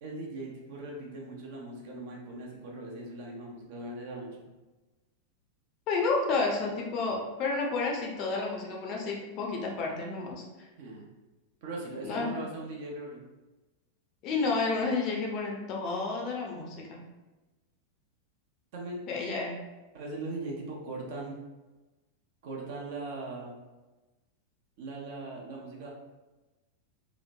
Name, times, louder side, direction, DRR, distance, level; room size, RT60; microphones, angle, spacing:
voice 1, 0.0-4.4 10.8-11.1 11.6-13.2 18.7-19.0 19.9-21.4 22.4-23.6 24.8-25.9, right 2 dB, 50° right, -2 dB, 0.6 m, -40 dB
voice 2, 5.9-10.7 12.0-12.4 14.2-17.0 19.1-19.6, left 3 dB, 40° left, 0 dB, 0.5 m, -31 dB
2.9 x 2.1 x 2.5 m, 1.1 s
figure-of-eight pair, 90°, 0 cm